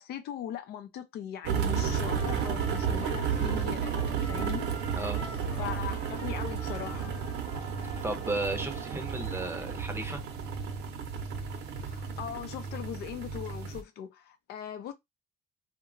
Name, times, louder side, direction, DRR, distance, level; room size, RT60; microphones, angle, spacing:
voice 1, 0.0-3.9 4.2-4.7 5.6-7.1 11.8-14.9, left 9 dB, 70° left, 0.5 m, -39 dB
sound 1, 1.4-13.8, right 7 dB, 75° right, 0.7 m, -32 dB
Trumpet, 1.7-9.2, left 3 dB, 45° left, 0.9 m, -48 dB
voice 2, 8.0-10.2, right 2 dB, 15° right, 0.6 m, -34 dB
2.8 x 2.2 x 2.5 m
cardioid pair, 110°, 17 cm